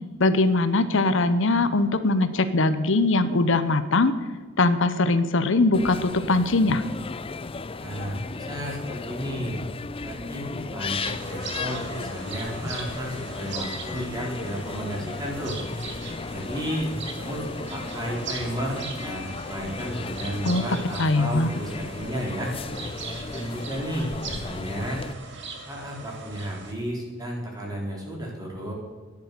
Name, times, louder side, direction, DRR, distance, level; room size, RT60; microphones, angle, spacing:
voice 1, 0.2-4.1 4.6-6.8 20.5-20.6 21.0-21.6, left 2 dB, 70° left, 11 dB, 0.8 m, -21 dB
sound 1, 5.7-25.1, left 3 dB, 30° left, 0.5 m, -35 dB
voice 2, 7.8-9.6 10.0-15.6 16.2-16.9 17.2-22.5 23.3-25.0 25.7-28.7, equal, 20° right, -2 dB, 3.9 m, -33 dB
sound 2, 11.0-26.7, right 4 dB, 65° right, 2.2 m, -40 dB
13.5 x 10.5 x 6.8 m, 1.4 s
head